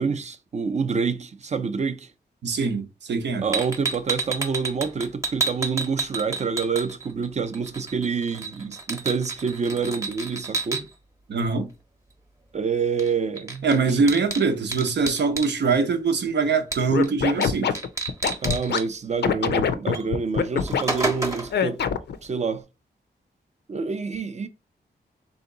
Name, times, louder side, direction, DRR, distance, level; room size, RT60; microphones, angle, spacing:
voice 1, 0.0-2.1 3.4-10.9 12.5-14.0 18.4-21.8 22.2-22.6 23.7-24.5, right 5 dB, 40° right, 0.5 m, -27 dB
voice 2, 2.4-3.5 11.3-11.7 13.6-17.8, right 4 dB, 85° right, 0.8 m, -23 dB
sound 1, 3.5-7.3 7.5-10.8 13.0-13.1 13.4-15.5 16.7-17.1 17.4-17.5 17.7-18.8 19.9-20.1 20.4-21.6, right 3 dB, 15° right, 0.9 m, -30 dB
Scratching (performance technique), 16.9-18.8 19.2-20.8 21.5-22.2, left 7 dB, 75° left, 0.5 m, -23 dB
3.6 x 2.8 x 3.8 m
wide cardioid pair, 115°, 17 cm